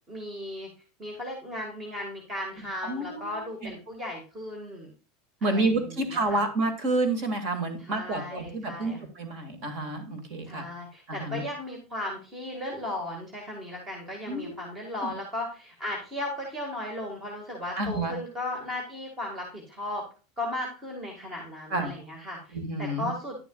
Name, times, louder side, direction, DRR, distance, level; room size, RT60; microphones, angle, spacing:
voice 1, 0.1-0.7 1.0-4.9 5.4-6.5 7.8-9.1 10.4-20.1 20.4-23.4, left 1 dB, 15° right, 1 dB, 1.8 m, -36 dB
voice 2, 2.8-3.7 5.4-10.7 11.1-11.4 14.3-14.6 15.0-15.1 17.8-18.1 21.7-21.9 22.5-23.1, right 2 dB, 40° right, 7 dB, 2.1 m, -29 dB
10.5 x 7.0 x 2.4 m, 0.35 s
supercardioid pair, 165°, 0 cm